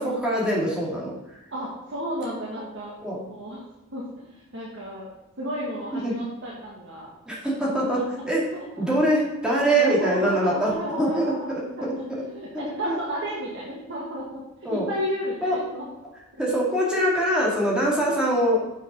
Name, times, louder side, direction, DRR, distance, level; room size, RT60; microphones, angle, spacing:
voice 1, 0.0-1.4 3.0-3.2 6.0-6.1 7.3-8.4 8.8-10.7 11.0-11.9 12.8-13.0 14.6-14.9 15.4-15.6 16.4-18.6, right 1 dB, 5° right, -5 dB, 2.4 m, -23 dB
voice 2, 1.5-2.9 3.3-5.1 5.4-7.1 7.7-8.2 8.7-9.1 9.4-11.8 12.3-14.4 14.7-15.9, equal, 60° right, -5 dB, 1.7 m, -33 dB
7.3 x 6.0 x 5.5 m, 0.94 s
head